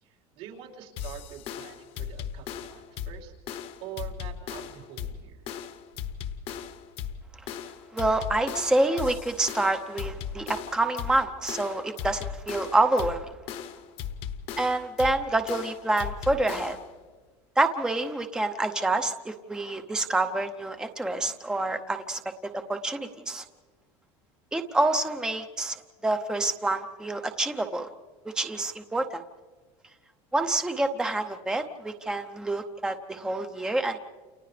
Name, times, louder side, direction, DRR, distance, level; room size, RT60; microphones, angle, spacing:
voice 1, 0.0-3.3 3.8-5.4, right 10 dB, 75° right, -3 dB, 4.6 m, -45 dB
sound 1, 1.0-16.9, left 8 dB, 45° left, 1.1 m, -37 dB
voice 2, 7.9-13.3 14.6-16.8 17.6-23.4 24.5-25.8 26.0-27.9 28.3-29.2 30.3-34.0, right 2 dB, 5° right, 7 dB, 0.8 m, -27 dB
30.0 x 29.0 x 3.4 m, 1.4 s
cardioid pair, 155°, 14 cm